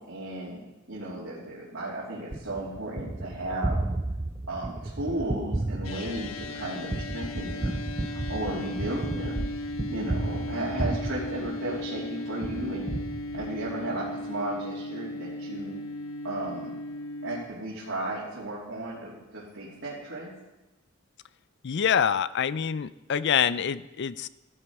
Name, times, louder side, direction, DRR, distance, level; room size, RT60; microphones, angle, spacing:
voice 1, 0.1-0.6 0.9-3.8 4.5-9.4 9.9-12.9 13.3-15.8 16.2-16.8 17.2-20.3, right 1 dB, 75° right, -7 dB, 3.1 m, -34 dB
Gunshot gunfire, 2.3-12.0 12.4-13.8, right 2 dB, 15° right, 0.4 m, -33 dB
sound 1, 5.8-17.4, left 1 dB, 85° left, 1.3 m, -37 dB
voice 2, 21.6-24.3, left 8 dB, 55° left, 15 dB, 0.5 m, -26 dB
14.5 x 12.0 x 4.8 m, 1.0 s
head